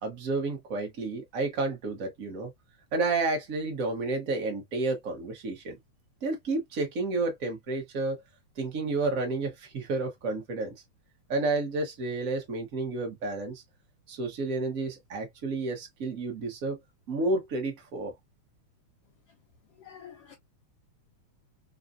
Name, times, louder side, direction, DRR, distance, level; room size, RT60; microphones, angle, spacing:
voice 1, 0.0-2.5 2.9-5.8 6.2-8.2 8.6-10.7 11.3-13.6 14.1-16.8 17.1-18.1, right 3 dB, 85° right, 0.7 m, -31 dB
voice 2, 19.8-20.3, left 8 dB, 65° left, 1.6 m, -47 dB
4.7 x 2.6 x 2.4 m
omnidirectional pair, 3.4 m